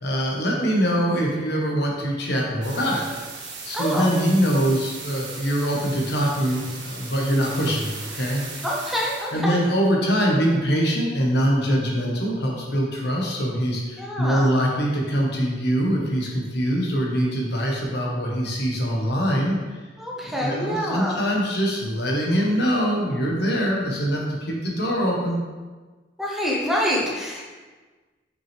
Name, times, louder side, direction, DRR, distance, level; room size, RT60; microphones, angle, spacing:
voice 1, 0.0-3.0 3.6-8.4 9.3-19.6 20.3-25.4, equal, 65° left, -2 dB, 1.4 m, -23 dB
sound 1, 2.6-9.4, right 3 dB, 80° right, 1.6 m, -37 dB
voice 2, 3.7-4.1 8.6-9.6 14.0-14.5 20.0-21.2 26.2-27.4, equal, ahead, -4 dB, 1.0 m, -26 dB
6.2 x 5.8 x 3.5 m, 1.3 s
head